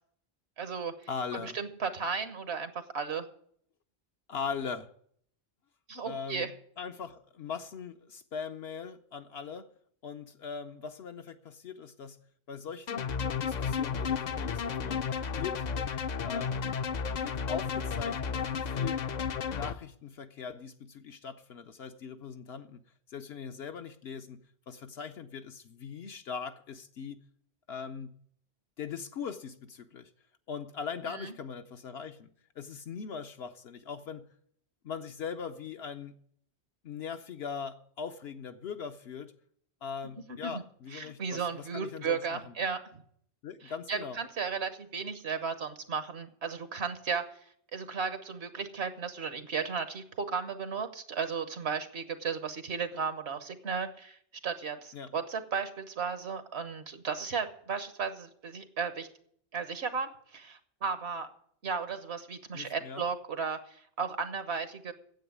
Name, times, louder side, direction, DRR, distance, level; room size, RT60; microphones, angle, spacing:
voice 1, 0.6-0.9 1.3-3.3 5.9-6.5 31.1-31.3 40.4-40.6 40.9-42.8 43.6-47.2 47.7-59.1 59.5-61.3 61.6-64.9, right 5 dB, 80° right, 1.4 m, -35 dB
voice 2, 1.1-1.6 4.3-4.9 6.0-6.5 6.8-9.7 10.0-12.2 12.5-15.0 15.3-15.7 16.2-16.6 17.1-19.0 19.5-22.8 23.1-24.4 24.7-27.2 27.7-28.2 28.8-30.1 30.5-32.3 32.6-34.3 34.8-36.1 36.8-39.3 39.8-42.5 43.4-44.2 54.9-55.1 62.5-63.0, left 6 dB, 70° left, 0.9 m, -40 dB
sound 1, 12.9-19.7, left 6 dB, 50° left, 0.6 m, -32 dB
9.2 x 7.9 x 9.2 m
omnidirectional pair, 1.1 m